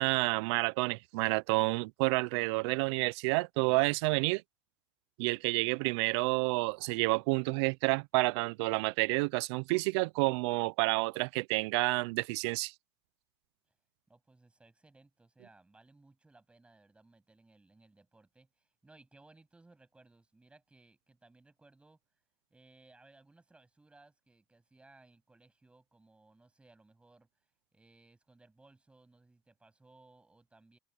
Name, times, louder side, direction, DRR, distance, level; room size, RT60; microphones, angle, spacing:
voice 1, 0.0-4.4 5.2-12.7, right 25 dB, 85° right, 0.5 m, -29 dB
voice 2, 14.1-22.0 22.5-27.3 27.7-30.8, right 2 dB, 10° right, 8.0 m, -62 dB
cardioid pair, 160°, 14 cm